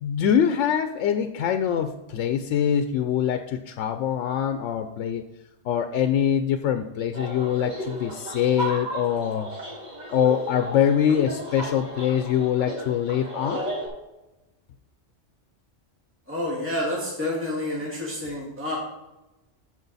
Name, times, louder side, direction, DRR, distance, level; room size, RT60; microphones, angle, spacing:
voice 1, 0.0-5.2 5.6-9.5 10.1-13.7, left 9 dB, 85° left, 8 dB, 0.9 m, -24 dB
sound 1, 7.1-13.9, equal, 35° right, 2.6 m, -34 dB
voice 2, 16.3-18.8, left 1 dB, 10° right, -5 dB, 2.1 m, -29 dB
13.5 x 5.0 x 4.1 m, 1.0 s
omnidirectional pair, 1.2 m